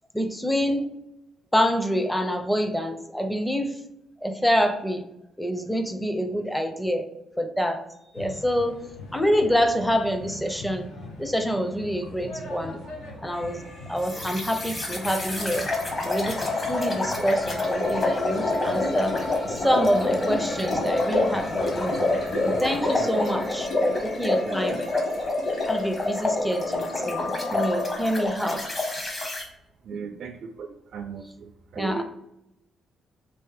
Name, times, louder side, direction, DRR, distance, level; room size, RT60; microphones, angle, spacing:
voice 1, 0.1-0.9 1.5-3.8 4.2-5.0 5.4-7.1 7.4-7.8 8.1-8.8 9.1-10.9 11.2-12.8 13.2-13.6 13.9-15.7 16.0-19.1 19.5-22.0 22.4-24.8 25.7-28.6 29.9-30.1 31.8-32.0, equal, 5° left, 6 dB, 0.6 m, -26 dB
sound 1, 8.1-22.8, left 1 dB, 80° left, 0.9 m, -42 dB
sound 2, 13.3-28.3, left 2 dB, 60° left, 1.2 m, -42 dB
sound 3, 14.0-29.4, left 2 dB, 35° left, 1.2 m, -27 dB
voice 2, 24.4-24.8 25.1-25.2 29.8-32.0, right 6 dB, 60° right, 5 dB, 0.3 m, -37 dB
3.4 x 3.0 x 3.3 m, 0.86 s
cardioid pair, 90°, 0 cm